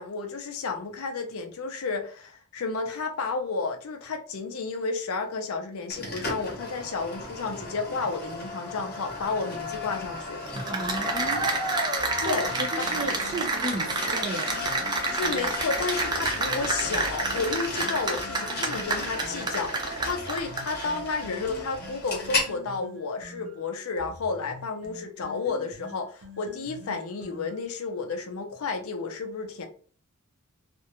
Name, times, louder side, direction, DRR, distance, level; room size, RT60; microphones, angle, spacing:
voice 1, 0.0-10.4 12.2-12.5 15.1-29.7, left 4 dB, 70° left, 0.5 m, -32 dB
sound 1, 5.9-22.5, left 2 dB, 45° left, 0.9 m, -35 dB
Cheering / Applause, 10.5-20.8, right 3 dB, 20° right, 0.4 m, -29 dB
voice 2, 10.6-11.4 12.2-14.5, right 2 dB, 35° right, 0.7 m, -34 dB
sound 2, 12.0-15.5 16.0-19.5 20.0-27.8, left 1 dB, 85° right, 0.6 m, -46 dB
2.5 x 2.1 x 2.8 m
head